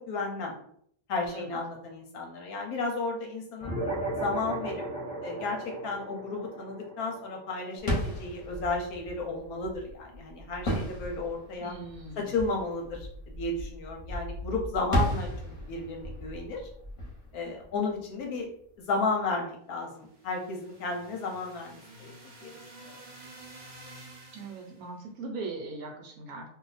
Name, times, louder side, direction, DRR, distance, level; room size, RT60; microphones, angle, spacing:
voice 1, 0.1-0.5 1.1-3.8 4.1-4.8 5.2-5.6 5.8-11.8 12.2-13.1 13.4-16.7 17.3-18.5 18.8-23.0, left 3 dB, 70° left, 2 dB, 1.0 m, -33 dB
sound 1, 3.6-8.4, right 2 dB, 5° left, 0.4 m, -36 dB
sound 2, 7.8-18.4, equal, 25° left, 0.8 m, -35 dB
voice 2, 11.6-12.3 24.3-26.5, right 3 dB, 65° right, 1 dB, 1.1 m, -40 dB
sound 3, 19.9-24.9, right 2 dB, 45° right, 0.7 m, -50 dB
2.6 x 2.4 x 4.0 m, 0.65 s
omnidirectional pair, 1.8 m